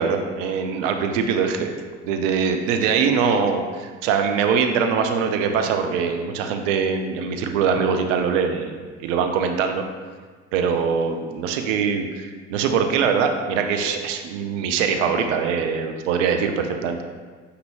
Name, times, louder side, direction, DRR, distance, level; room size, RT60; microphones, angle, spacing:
voice 1, 0.0-1.7 2.0-9.8 10.5-17.0, right 6 dB, 75° right, 5 dB, 0.5 m, -22 dB
5.5 x 2.6 x 2.8 m, 1.5 s
hypercardioid pair, 55°, 38 cm